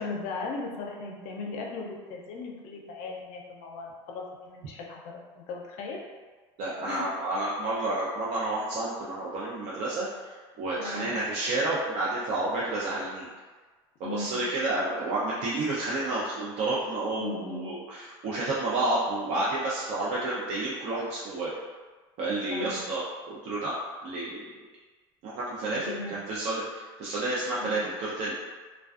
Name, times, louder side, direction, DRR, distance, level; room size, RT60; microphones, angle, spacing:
voice 1, 0.0-6.0 6.8-7.1 10.8-11.2 14.0-14.4 17.1-17.7 22.5-22.8 25.7-26.1 27.5-27.9, left 3 dB, 65° left, 0 dB, 0.5 m, -38 dB
voice 2, 6.6-13.3 14.0-21.5 22.2-23.7 24.0-24.5 25.2-28.4, right 2 dB, 55° right, -7 dB, 0.5 m, -30 dB
2.4 x 2.2 x 2.4 m, 1.4 s
supercardioid pair, 100°, 13 cm